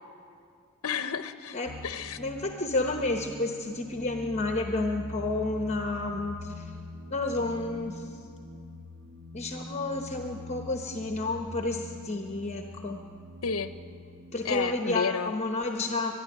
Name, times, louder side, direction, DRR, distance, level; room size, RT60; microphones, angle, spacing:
voice 1, 0.8-1.6 1.8-2.2 13.4-13.7 14.4-15.3, left 6 dB, 75° left, 10 dB, 0.7 m, -31 dB
sound 1, 1.7-14.6, equal, 65° right, 1.3 m, -43 dB
voice 2, 2.2-6.7 7.1-8.2 9.3-13.0 14.3-16.1, left 2 dB, 30° left, 3 dB, 1.0 m, -31 dB
24.0 x 11.0 x 10.0 m, 2.4 s
head